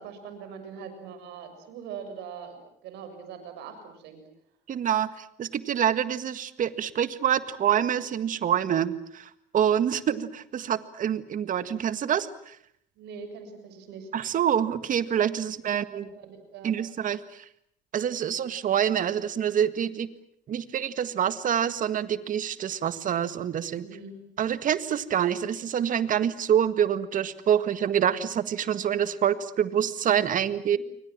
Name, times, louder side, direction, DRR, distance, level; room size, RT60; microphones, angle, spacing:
voice 1, 0.0-4.2 13.0-14.1 15.6-16.7 23.8-24.2 30.7-30.8, right 6 dB, 85° right, 8 dB, 6.7 m, -42 dB
voice 2, 4.7-12.6 14.1-16.1 16.6-17.5 17.9-20.1 20.5-23.8 24.4-30.8, right 9 dB, 50° right, 13 dB, 1.8 m, -26 dB
29.0 x 24.0 x 7.5 m, 0.68 s
cardioid pair, 110°, 17 cm